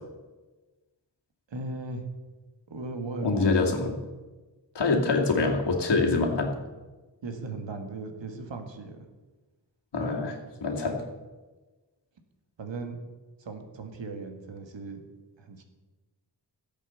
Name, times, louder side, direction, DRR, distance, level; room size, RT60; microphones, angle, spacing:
voice 1, 1.5-2.1 2.7-3.8 5.0-5.2 7.2-9.1 10.0-10.3 12.6-13.0 13.4-15.0 15.4-15.6, right 3 dB, 80° right, 5 dB, 1.9 m, -37 dB
voice 2, 3.2-4.0 4.7-6.5 9.9-10.3 10.6-11.0, left 3 dB, 65° left, 1 dB, 2.4 m, -25 dB
13.5 x 8.1 x 7.1 m, 1.2 s
wide cardioid pair, 80°, 44 cm